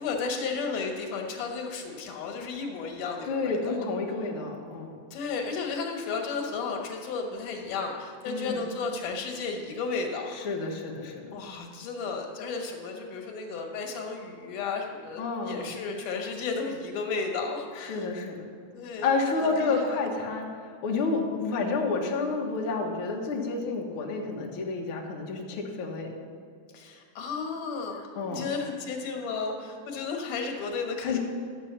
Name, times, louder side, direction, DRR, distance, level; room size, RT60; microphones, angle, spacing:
voice 1, 0.0-3.9 5.1-10.4 11.3-18.1 18.7-19.1 19.4-20.0 26.7-31.2, left 4 dB, 85° left, 2 dB, 2.8 m, -33 dB
voice 2, 3.3-5.0 8.3-8.6 10.3-11.3 15.2-15.7 17.8-18.4 19.0-20.5 20.8-26.1 28.2-28.4 31.0-31.2, left 4 dB, 55° left, -1 dB, 1.8 m, -30 dB
11.5 x 7.4 x 5.8 m, 2.2 s
omnidirectional pair, 3.5 m